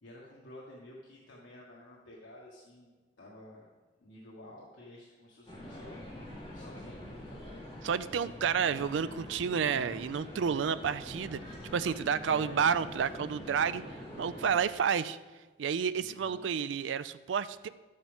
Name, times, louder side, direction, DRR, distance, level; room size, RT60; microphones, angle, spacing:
voice 1, 0.0-3.7 4.0-6.2 6.5-7.5 12.2-12.8 16.0-16.6, left 1 dB, 90° left, -4 dB, 1.6 m, -51 dB
sound 1, 5.5-14.6, left 1 dB, 30° left, 2.8 m, -45 dB
voice 2, 7.8-11.4 11.7-13.8 14.2-15.2 15.6-17.7, right 7 dB, 80° right, 14 dB, 0.4 m, -30 dB
11.5 x 8.7 x 3.5 m, 1.3 s
head